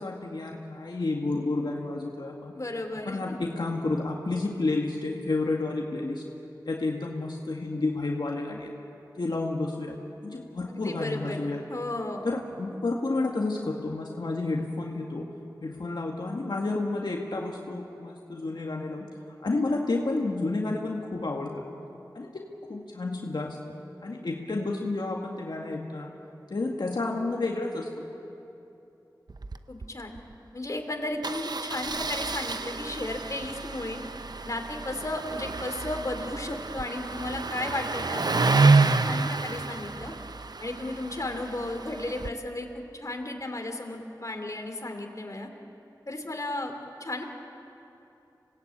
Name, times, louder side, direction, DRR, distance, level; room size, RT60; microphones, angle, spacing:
voice 1, 0.0-2.6 3.1-6.2 6.7-8.7 9.2-10.0 10.2-11.6 12.2-15.3 15.6-19.1 19.4-21.6 22.1-23.6 24.0-26.1 26.5-28.1, left 2 dB, 75° left, -1 dB, 1.9 m, -30 dB
voice 2, 2.5-3.4 10.7-12.3 29.7-30.2 30.5-34.0 34.4-40.1 40.6-45.5 46.1-46.7 47.0-47.2, left 2 dB, 45° left, 3 dB, 3.1 m, -34 dB
Engine starting, 29.3-29.6 29.8-29.9 30.2-30.3 31.2-42.3, right 3 dB, 65° right, 0.8 m, -28 dB
27.5 x 18.0 x 8.7 m, 2.9 s
wide cardioid pair, 55°, 8 cm